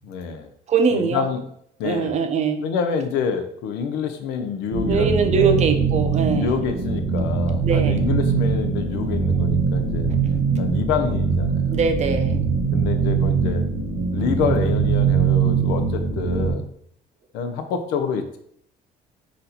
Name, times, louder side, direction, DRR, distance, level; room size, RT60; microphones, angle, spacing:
voice 1, 0.0-0.5 0.9-1.4 1.8-2.1 2.6-5.6 6.3-10.1 10.6-11.8 12.7-13.6 14.1-16.7 17.3-18.4, left 6 dB, 90° left, 7 dB, 0.6 m, -27 dB
voice 2, 0.7-1.3 1.8-2.6 4.9-6.6 7.6-8.1 11.7-12.4, right 5 dB, 40° right, 6 dB, 0.6 m, -22 dB
sound 1, 4.7-16.5, right 5 dB, 90° right, 1.3 m, -22 dB
4.1 x 2.6 x 4.1 m, 0.68 s
cardioid pair, 110°, 17 cm